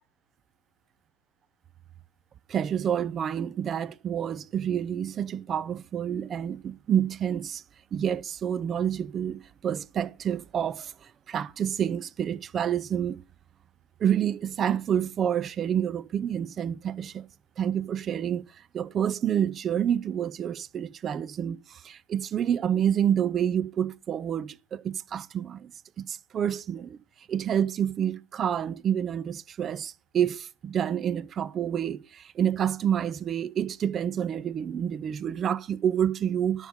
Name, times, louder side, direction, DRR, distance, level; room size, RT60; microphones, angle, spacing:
voice 1, 2.5-7.6 7.9-10.9 11.3-13.2 14.0-17.3 17.6-18.4 18.7-25.7 26.0-27.0 27.3-36.7, right 9 dB, 25° right, 0.4 m, -28 dB
12.5 x 5.6 x 5.2 m
figure-of-eight pair, 90°, 0 cm